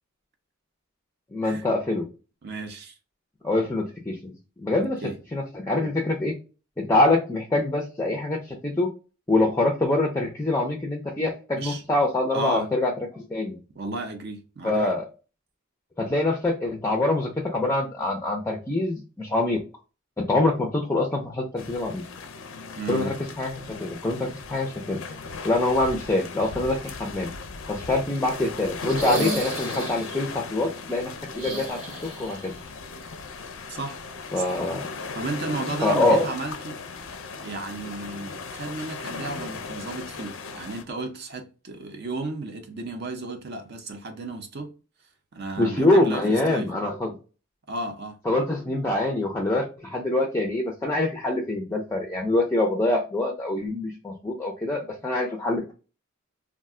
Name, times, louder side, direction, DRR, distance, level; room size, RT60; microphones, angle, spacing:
voice 1, 1.3-2.1 3.4-4.3 4.6-5.0 5.3-6.4 6.8-8.9 9.3-13.6 14.6-15.1 16.0-19.6 20.2-22.0 22.9-25.0 25.4-27.3 27.7-31.8 32.2-32.5 34.3-34.8 35.8-36.3 45.6-47.2 48.3-55.7, left 2 dB, 15° left, 0.4 m, -25 dB
voice 2, 2.4-2.9 4.8-5.2 11.6-11.8 12.3-12.7 13.8-14.9 22.8-23.2 33.7-34.0 34.5-34.6 35.1-36.8 37.4-44.7 45.3-46.7 47.7-48.2, right 2 dB, 50° right, 0.6 m, -34 dB
sound 1, 21.6-40.8, left 4 dB, 70° left, 0.4 m, -37 dB
sound 2, 28.8-30.2 31.3-32.5 32.8-32.9 34.5-34.6, right 1 dB, 85° right, 1.3 m, -33 dB
2.4 x 2.1 x 3.6 m
head